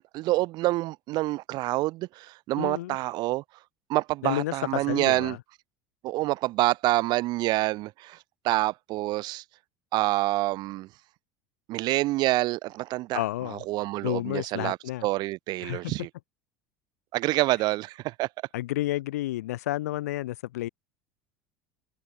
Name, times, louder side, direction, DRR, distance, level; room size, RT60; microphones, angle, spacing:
voice 1, 0.1-3.4 3.9-5.4 6.0-8.2 8.4-9.4 9.9-10.9 11.7-13.2 13.5-14.8 15.0-16.1 17.1-18.3, right 19 dB, 60° right, 1.4 m, -27 dB
voice 2, 2.6-3.0 4.2-5.4 13.1-13.6 14.0-15.1 15.6-15.9 18.5-20.7, left 15 dB, 80° left, 5.7 m, -31 dB
hypercardioid pair, 80°, 8 cm